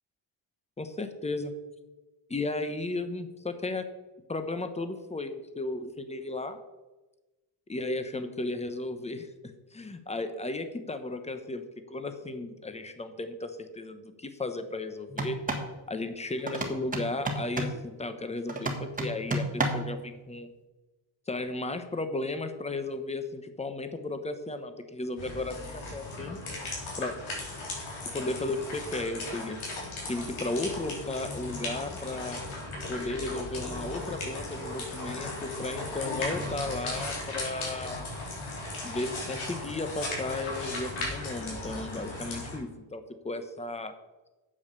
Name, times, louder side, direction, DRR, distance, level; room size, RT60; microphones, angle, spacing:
voice 1, 0.8-1.5 2.3-3.9 4.3-6.6 7.7-9.3 9.7-15.4 15.9-20.5 21.3-26.4 27.0-27.1 28.1-29.6 30.1-32.4 32.9-38.1 38.8-43.9, left 2 dB, 15° left, 9 dB, 0.9 m, -34 dB
sound 1, 15.1-15.7 16.5-17.8 18.5-19.9, right 2 dB, 15° right, 1.4 m, -31 dB
sound 2, 25.2-42.6, left 2 dB, 85° left, 4.1 m, -37 dB
8.7 x 7.2 x 6.7 m, 1.1 s
wide cardioid pair, 155°, 47 cm